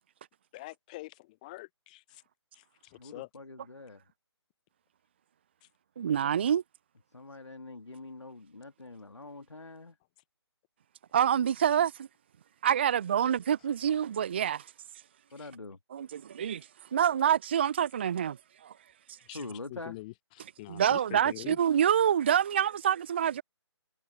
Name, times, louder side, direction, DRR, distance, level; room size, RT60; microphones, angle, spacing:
voice 1, 0.5-2.2 2.5-3.3 15.4-15.5 19.3-21.6, left 20 dB, 15° left, 0.9 m, -45 dB
voice 2, 3.0-4.0 6.2-6.3 7.1-10.0 15.3-15.8 19.3-20.0, left 3 dB, 75° left, 2.0 m, -44 dB
voice 3, 6.0-6.6 11.1-12.1 12.6-14.6 15.9-16.7 16.9-18.4 18.6-18.7 20.7-23.4, right 9 dB, 25° right, 0.4 m, -26 dB
figure-of-eight pair, 145°, 15 cm